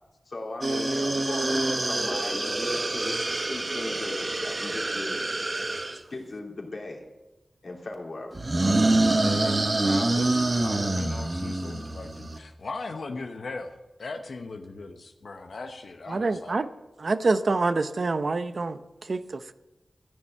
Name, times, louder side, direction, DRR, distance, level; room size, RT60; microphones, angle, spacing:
voice 1, 0.2-5.2 6.1-7.0 7.6-8.9, left 2 dB, 60° left, 0 dB, 3.1 m, -38 dB
sound 1, 0.6-6.0 8.3-12.4, right 2 dB, 40° right, 1.2 m, -26 dB
voice 2, 9.1-16.6, left 3 dB, 80° left, 5 dB, 0.9 m, -38 dB
voice 3, 16.1-16.7 17.0-19.5, right 3 dB, 60° right, 11 dB, 0.7 m, -26 dB
14.0 x 7.1 x 8.8 m, 1.1 s
wide cardioid pair, 75°, 0 cm